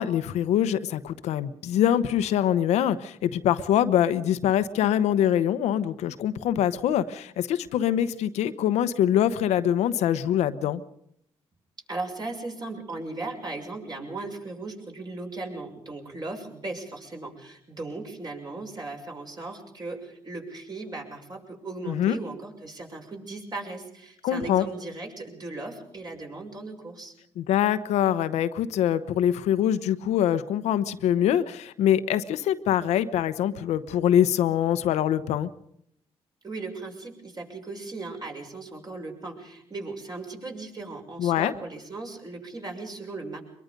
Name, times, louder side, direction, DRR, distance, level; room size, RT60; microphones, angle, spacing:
voice 1, 0.0-10.8 21.9-22.2 24.2-24.6 27.4-35.5 41.2-41.5, left 10 dB, 90° left, 12 dB, 1.0 m, -24 dB
voice 2, 11.9-27.1 36.4-43.4, right 3 dB, 40° right, 1 dB, 6.6 m, -37 dB
23.5 x 22.0 x 5.3 m, 0.72 s
cardioid pair, 70°, 11 cm